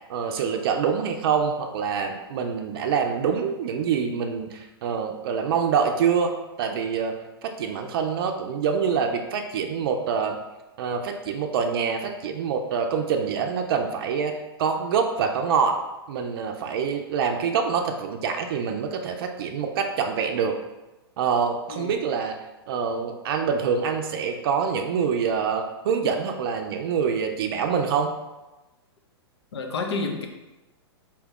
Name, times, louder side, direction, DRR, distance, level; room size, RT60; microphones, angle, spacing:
voice 1, 0.1-7.1 7.4-10.4 10.8-15.8 16.1-20.6 21.2-22.4 22.7-28.1, right 6 dB, 60° right, 4 dB, 0.4 m, -25 dB
voice 2, 29.5-30.3, left 3 dB, 75° left, 3 dB, 0.7 m, -29 dB
4.4 x 2.3 x 3.5 m, 1.1 s
hypercardioid pair, 110°, 14 cm